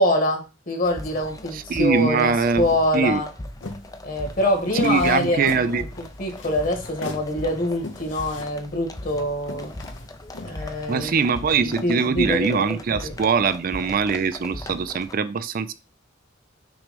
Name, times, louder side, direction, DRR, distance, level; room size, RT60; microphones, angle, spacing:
voice 1, 0.0-3.3 4.0-9.7 10.4-11.3 11.6-12.8 13.0-13.1, left 1 dB, 45° left, 3 dB, 1.7 m, -25 dB
sound 1, 0.8-15.1, left 1 dB, 20° left, 0.6 m, -39 dB
voice 2, 1.5-2.6 2.9-3.2 4.8-5.8 10.9-15.7, right 5 dB, 50° right, 13 dB, 0.4 m, -22 dB
sound 2, 3.6-11.1, left 2 dB, 75° left, 1.0 m, -37 dB
6.1 x 3.2 x 5.1 m, 0.32 s
head